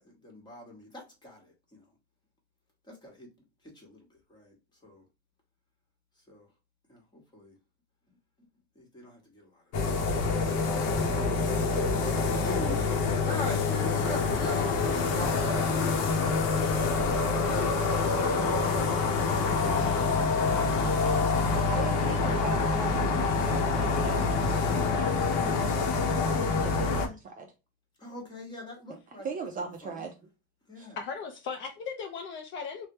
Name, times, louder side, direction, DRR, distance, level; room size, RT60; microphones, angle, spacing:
voice 1, 0.0-1.8 2.9-3.3 3.7-4.0 4.3-4.5 4.8-5.0 6.3-6.5 6.9-7.5 8.7-9.6 12.0-12.9 13.2-19.1 19.3-20.6 21.0-21.1 26.8-27.2 28.0-29.3 29.5-30.1 30.7-31.0, left 1 dB, 15° left, 1.2 m, -43 dB
sound 1, 9.7-27.1, left 4 dB, 75° left, 0.8 m, -26 dB
voice 2, 21.7-23.6 23.9-24.2 24.5-27.1 27.4-27.5 29.2-30.1 30.8-30.9, right 5 dB, 30° right, 0.4 m, -40 dB
voice 3, 31.0-32.9, left 5 dB, 40° left, 0.5 m, -37 dB
3.2 x 2.2 x 2.7 m
cardioid pair, 150°, 29 cm